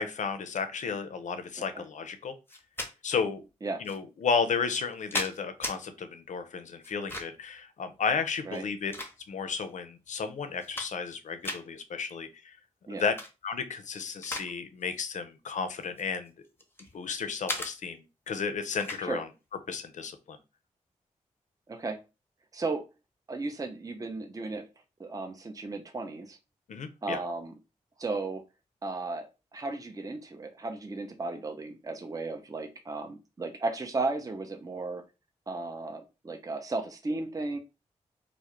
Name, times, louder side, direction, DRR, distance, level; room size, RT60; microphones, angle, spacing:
voice 1, 0.0-2.3 3.0-3.4 3.8-8.9 9.3-12.6 12.9-13.2 13.4-16.3 16.9-19.3 19.7-20.4 26.7-27.2, left 5 dB, 65° left, 10 dB, 0.4 m, -33 dB
sound 1, 2.5-2.9 3.8-4.0 4.7-5.8 6.8-7.5 8.4-9.5 10.1-10.2 10.5-11.1 11.4-11.6 13.0-13.3 13.7-14.5 14.8-15.1 15.8-16.9 17.5-17.7 18.8-19.0, left 1 dB, 15° left, 0.7 m, -37 dB
voice 2, 21.7-22.0 22.5-22.8 23.3-24.7 25.0-26.4 27.0-27.5 28.0-28.4 28.8-29.3 29.5-35.0 35.5-37.6, right 3 dB, 25° right, 5 dB, 0.5 m, -35 dB
2.3 x 2.0 x 2.9 m, 0.28 s
supercardioid pair, 40°, 14 cm